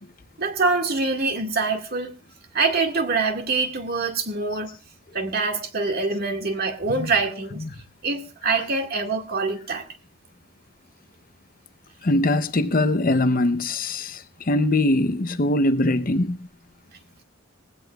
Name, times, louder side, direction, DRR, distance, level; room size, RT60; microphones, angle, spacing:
voice 1, 0.4-2.1 2.5-4.7 5.1-7.6 8.0-9.9, right 4 dB, 50° right, 1.9 m, -25 dB
voice 2, 12.0-16.5, left 2 dB, 45° left, 0.7 m, -22 dB
20.0 x 16.0 x 2.4 m
head